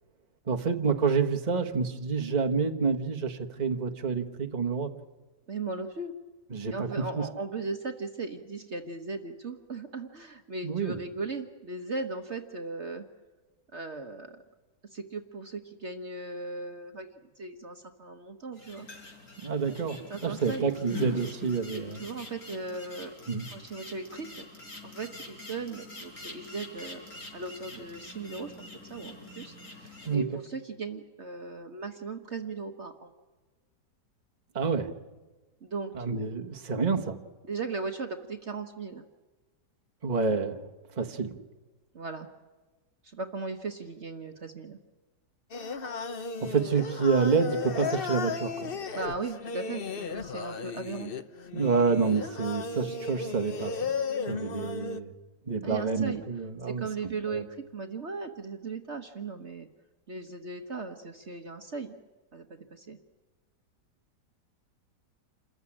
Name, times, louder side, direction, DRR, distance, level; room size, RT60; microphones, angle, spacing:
voice 1, 0.5-4.9 6.5-6.9 7.1-7.3 10.6-11.0 19.4-22.0 23.3-23.4 30.1-30.2 34.5-34.9 35.9-37.2 40.0-40.6 41.0-41.3 46.4-48.8 51.5-53.9 54.2-55.1 55.5-56.9 57.3-57.4, right 5 dB, 25° right, 4 dB, 1.4 m, -28 dB
voice 2, 5.5-6.1 6.7-13.1 13.7-14.4 14.9-17.1 17.4-18.9 20.1-20.7 21.7-23.1 23.5-24.4 24.8-33.1 35.6-36.0 37.4-39.1 41.9-42.3 43.0-44.8 48.9-51.1 54.4-54.8 55.6-56.2 56.6-57.5 57.7-59.7 60.1-62.0 62.3-63.0, right 3 dB, 45° right, 5 dB, 1.4 m, -37 dB
sound 1, 18.5-30.1, left 2 dB, 55° left, 5.3 m, -44 dB
Singing, 45.5-55.0, left 5 dB, 40° left, 0.9 m, -35 dB
28.0 x 15.0 x 10.0 m, 1.2 s
omnidirectional pair, 1.8 m